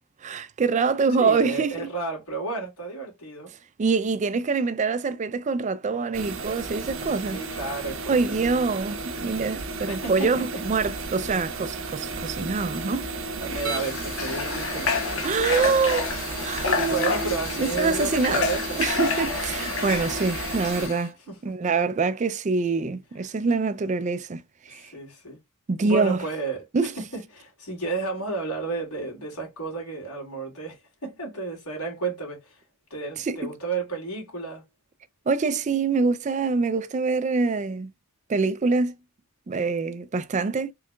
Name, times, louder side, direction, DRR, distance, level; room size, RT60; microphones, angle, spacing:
voice 1, 0.2-1.9 3.8-7.4 8.1-13.1 15.2-16.1 16.4-18.4 18.8-21.2 21.4-24.9 25.7-26.2 26.7-26.9 33.2-33.5 35.3-37.9 38.3-38.9 39.5-40.7, right 4 dB, 30° right, 0.4 m, -25 dB
voice 2, 1.1-3.5 7.3-8.6 8.8-9.0 9.6-10.6 13.4-15.0 16.7-18.8 21.3-21.7 24.7-25.4 25.8-26.7 27.0-32.6 32.9-34.6, right 3 dB, 85° left, 2.6 m, -32 dB
sound 1, 6.1-20.9, right 3 dB, 60° right, 1.0 m, -33 dB
Water / Water tap faucet, 13.5-21.1, left 4 dB, 60° left, 1.1 m, -29 dB
4.6 x 3.4 x 2.2 m
head